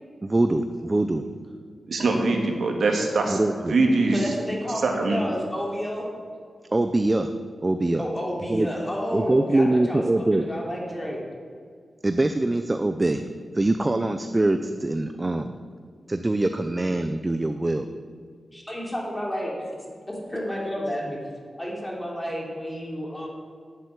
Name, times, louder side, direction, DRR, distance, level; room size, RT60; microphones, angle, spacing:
voice 1, 0.2-1.2 3.3-3.7 6.7-7.3 7.6-8.0 8.5-8.7 9.1-10.4 12.0-13.2 13.5-15.5 16.1-17.9, right 2 dB, 20° right, 8 dB, 0.5 m, -23 dB
voice 2, 1.9-3.4 3.7-4.2 4.8-5.2, right 3 dB, 70° right, 2 dB, 2.1 m, -22 dB
voice 3, 4.1-6.1 8.0-11.2 18.5-19.7 20.1-21.2 21.6-23.3, equal, 10° left, -2 dB, 3.1 m, -31 dB
11.0 x 8.3 x 9.5 m, 2.1 s
wide cardioid pair, 145°, 0 cm